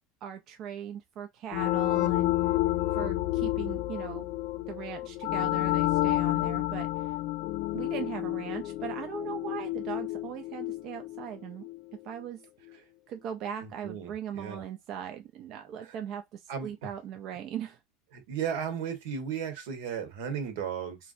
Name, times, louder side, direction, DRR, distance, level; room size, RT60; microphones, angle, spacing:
voice 1, 0.2-2.3 2.9-4.3 4.7-7.1 7.7-12.4 13.1-17.8, right 9 dB, 45° right, 0.4 m, -39 dB
sound 1, 1.5-12.0, left 17 dB, 55° left, 0.3 m, -30 dB
voice 2, 13.6-14.6 15.8-15.9 16.5-16.7 18.1-21.0, right 7 dB, 80° right, 1.1 m, -35 dB
3.0 x 2.6 x 2.5 m
supercardioid pair, 140°, 0 cm